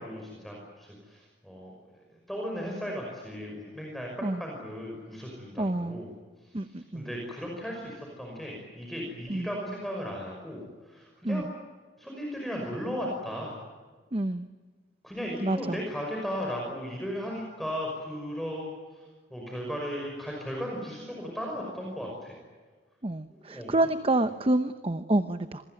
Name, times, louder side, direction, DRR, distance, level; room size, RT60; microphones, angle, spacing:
voice 1, 0.0-1.7 2.3-6.1 6.9-11.5 12.0-13.6 15.0-19.0 19.3-22.4 23.5-23.9, equal, ahead, -1 dB, 5.7 m, -36 dB
voice 2, 5.6-6.0 6.5-7.1 9.3-9.5 11.2-11.4 14.1-14.5 15.4-15.8 23.0-25.6, right 2 dB, 35° right, 10 dB, 0.8 m, -28 dB
27.5 x 21.5 x 9.4 m, 1.4 s
head